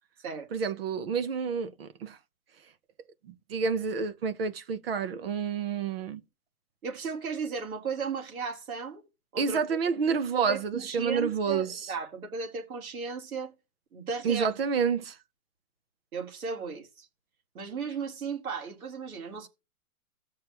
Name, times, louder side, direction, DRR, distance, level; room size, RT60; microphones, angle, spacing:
voice 1, 0.5-2.2 3.5-6.2 9.4-11.8 14.2-15.2, right 6 dB, 40° right, 1.0 m, -29 dB
voice 2, 6.8-9.0 9.3-9.6 10.5-13.5 13.9-14.5 16.1-17.1 17.5-19.5, right 5 dB, 70° right, 3.6 m, -35 dB
16.5 x 6.6 x 3.0 m
hypercardioid pair, 165°, 44 cm